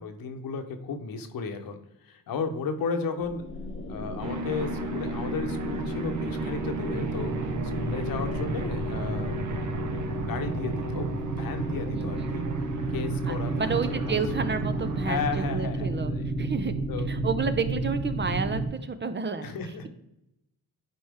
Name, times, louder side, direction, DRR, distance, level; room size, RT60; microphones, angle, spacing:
voice 1, 0.0-1.8 2.0-3.5 3.9-7.3 7.8-9.4 10.1-12.4 12.9-13.8 14.0-14.2 15.0-16.3 16.9-17.1 19.4-19.9, left 5 dB, 70° left, 6 dB, 1.1 m, -34 dB
sound 1, 3.2-18.7, right 2 dB, 35° left, 1.1 m, -31 dB
sound 2, 4.2-15.6, right 4 dB, 55° right, 1.0 m, -36 dB
voice 2, 11.9-12.3 13.3-16.1 16.4-16.7 17.1-19.5, right 5 dB, 30° right, 9 dB, 0.6 m, -31 dB
10.0 x 4.3 x 3.5 m, 0.86 s
cardioid pair, 95°, 36 cm